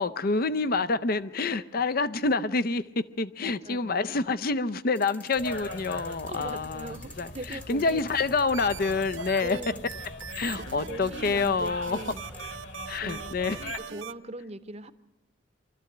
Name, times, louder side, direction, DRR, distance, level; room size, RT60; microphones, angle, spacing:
voice 1, 0.0-7.3 7.7-9.6 10.3-12.0 12.9-13.6, left 3 dB, 50° left, 0.6 m, -27 dB
voice 2, 3.4-4.3 6.3-8.0 9.4-10.0 10.9-12.2 13.0-14.9, right 1 dB, 30° right, 0.8 m, -41 dB
sound 1, 5.0-12.5, left 1 dB, 5° left, 0.9 m, -51 dB
sound 2, 5.3-13.8, left 1 dB, 65° left, 3.4 m, -41 dB
sound 3, 8.5-14.1, right 8 dB, 70° right, 0.7 m, -41 dB
24.5 x 13.5 x 7.8 m
head